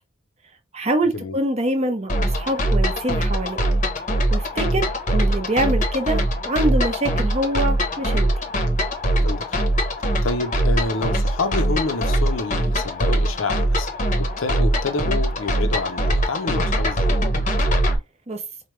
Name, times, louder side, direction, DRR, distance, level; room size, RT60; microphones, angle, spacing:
voice 1, 0.7-3.6 4.3-8.3 18.3-18.4, right 1 dB, 30° right, 0.7 m, -25 dB
sound 1, 2.1-18.0, right 1 dB, 35° left, 0.8 m, -22 dB
voice 2, 9.2-9.6 10.2-13.9 14.2-17.2, left 3 dB, 75° left, 0.6 m, -28 dB
4.6 x 2.2 x 3.1 m
head